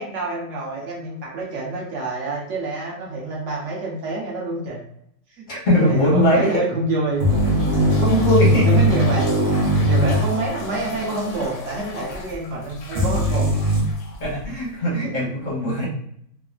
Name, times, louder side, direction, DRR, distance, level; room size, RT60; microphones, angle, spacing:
voice 1, 0.0-4.8 5.4-5.5 5.8-7.2 8.6-13.5, right 2 dB, 55° right, -3 dB, 1.2 m, -27 dB
voice 2, 5.5-6.5 8.0-8.7 14.2-15.9, left 1 dB, 45° left, -4 dB, 0.7 m, -20 dB
sound 1, 7.2-14.8, left 2 dB, 70° left, 0.9 m, -36 dB
sound 2, 7.2-11.0 11.2-11.3 12.9-13.8, equal, 75° right, 0.3 m, -19 dB
3.3 x 2.0 x 2.3 m, 0.69 s
omnidirectional pair, 1.6 m